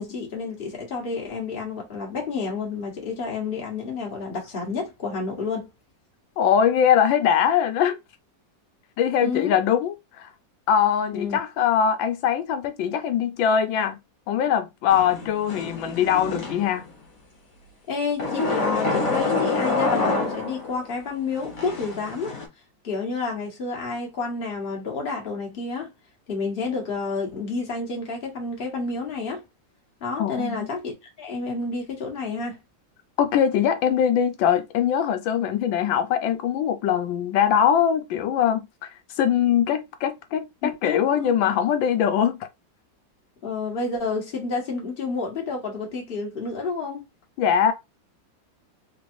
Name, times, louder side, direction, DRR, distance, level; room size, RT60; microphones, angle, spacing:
voice 1, 0.0-5.7 9.2-9.5 11.1-11.4 17.9-22.3 22.8-25.9 26.3-29.4 30.0-32.6 40.6-41.3 43.4-47.0, left 4 dB, 35° left, 1.4 m, -30 dB
voice 2, 6.4-8.0 9.0-10.3 10.7-14.0 14.3-16.8 30.2-30.7 33.2-38.9 39.2-42.4 47.4-47.7, left 8 dB, 90° left, 1.4 m, -22 dB
sound 1, 14.9-16.9 18.2-20.8 21.4-22.5, left 3 dB, 50° left, 1.5 m, -27 dB
3.7 x 3.1 x 2.5 m
omnidirectional pair, 2.0 m